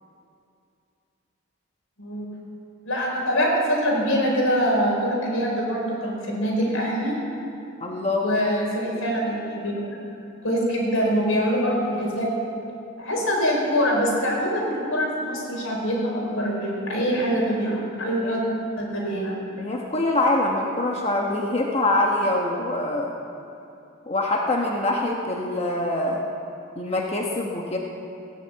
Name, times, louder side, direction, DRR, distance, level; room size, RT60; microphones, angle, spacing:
voice 1, 2.8-7.2 8.2-10.0 10.4-12.3 13.0-18.5 18.8-19.4, equal, 80° left, -2 dB, 4.7 m, -24 dB
voice 2, 7.8-8.3 18.2-18.4 19.6-23.1 24.1-26.3 26.8-27.8, left 2 dB, 30° left, 0 dB, 1.1 m, -24 dB
16.0 x 10.5 x 8.3 m, 2.7 s
head